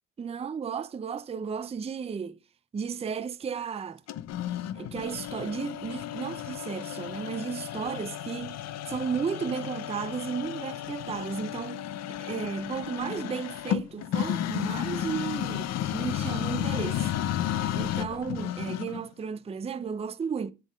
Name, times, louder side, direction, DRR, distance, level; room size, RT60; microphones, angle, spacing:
voice 1, 0.2-2.4 2.7-4.0 4.8-8.6 8.9-17.1 17.7-20.5, right 6 dB, 20° right, 0.4 m, -34 dB
sound 1, 4.1-19.1, left 11 dB, 60° left, 0.5 m, -33 dB
7.4 x 3.7 x 5.0 m
cardioid pair, 90°, 30 cm